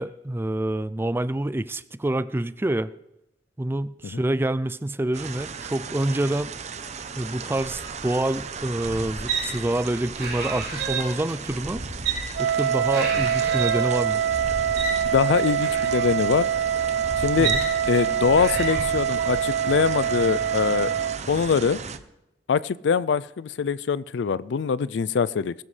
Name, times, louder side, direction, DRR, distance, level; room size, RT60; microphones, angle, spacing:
voice 1, 0.0-2.9 3.6-6.5 7.2-11.8 12.4-14.2 17.4-17.6, right 1 dB, 15° right, 15 dB, 0.4 m, -27 dB
sound 1, 5.1-22.0, right 5 dB, 40° right, 0.7 m, -36 dB
sound 2, 7.6-19.4, right 3 dB, 65° right, 4.3 m, -33 dB
Wind instrument woodwind instrument, 12.3-21.2, right 9 dB, 90° right, 0.4 m, -25 dB
voice 2, 15.1-16.5 17.2-17.5 17.9-20.9 21.3-21.8 22.5-25.5, left 6 dB, 80° left, 19 dB, 0.4 m, -23 dB
20.5 x 12.5 x 3.3 m, 0.88 s
head